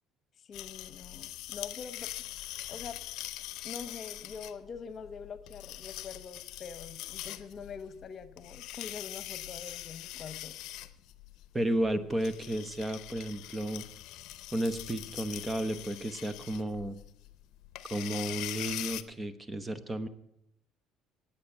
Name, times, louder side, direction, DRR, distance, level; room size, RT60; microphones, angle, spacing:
voice 1, 0.4-3.0 3.6-10.5, left 6 dB, 45° left, 13 dB, 1.0 m, -45 dB
sound 1, 0.5-19.0, left 15 dB, 70° left, 0.6 m, -43 dB
voice 2, 11.5-13.8 14.5-17.0 17.9-20.1, right 1 dB, 15° right, 13 dB, 0.9 m, -33 dB
9.4 x 8.6 x 8.8 m, 0.80 s
supercardioid pair, 95°, 0 cm